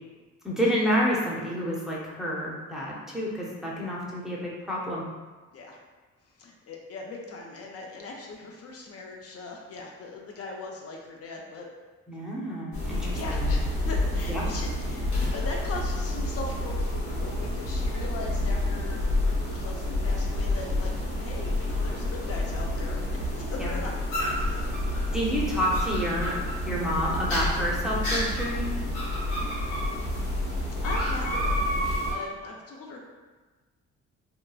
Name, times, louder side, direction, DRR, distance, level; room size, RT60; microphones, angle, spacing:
voice 1, 0.4-5.0 12.1-13.5 14.3-14.4 23.6-23.7 25.1-26.4 26.7-28.7, equal, ahead, -5 dB, 0.5 m, -29 dB
voice 2, 6.2-11.7 12.8-23.9 24.4-24.9 29.5-29.8 30.8-31.8 32.1-33.0, left 3 dB, 55° left, 0 dB, 0.4 m, -40 dB
sound 1, 12.7-32.1, left 1 dB, 70° left, 0.9 m, -28 dB
2.8 x 2.2 x 2.3 m, 1.3 s
cardioid pair, 90°, 30 cm